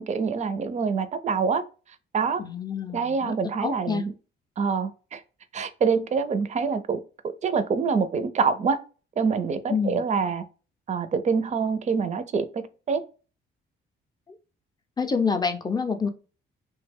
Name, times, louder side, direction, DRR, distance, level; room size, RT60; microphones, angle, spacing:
voice 1, 0.0-1.6 2.1-2.4 2.9-4.1 4.6-5.2 5.5-7.0 7.4-8.8 9.2-10.4 10.9-13.0, right 5 dB, 35° right, 0.4 m, -25 dB
voice 2, 2.4-3.3 3.6-4.1 9.7-10.0 15.0-16.1, left 5 dB, 20° left, 0.5 m, -27 dB
2.8 x 2.2 x 3.3 m
cardioid pair, 90°, 20 cm